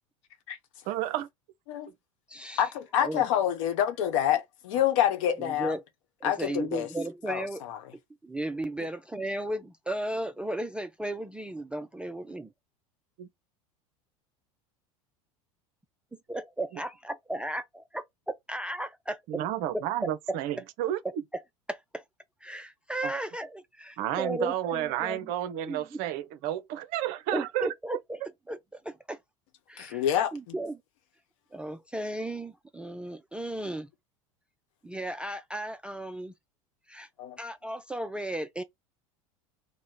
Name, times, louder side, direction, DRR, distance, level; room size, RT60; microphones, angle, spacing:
voice 1, 0.9-1.3 13.2-13.3 19.3-21.0 24.0-27.7, right 12 dB, 55° right, 0.6 m, -31 dB
voice 2, 2.3-2.7 3.0-3.2 5.4-5.8 6.2-7.6 8.2-12.5 16.3-17.6 17.9-19.2 21.7-22.0 22.4-25.3 25.7-26.0 27.3-28.2 28.5-29.2 29.7-30.0 30.3-30.8 31.5-33.9 34.8-36.3 36.9-37.1 37.4-38.6, right 1 dB, 5° right, 0.3 m, -35 dB
voice 3, 2.9-5.7 6.2-6.9 7.3-7.8 29.8-30.5 37.2-37.4, left 10 dB, 60° left, 0.9 m, -27 dB
3.0 x 2.1 x 3.7 m
hypercardioid pair, 80°, 18 cm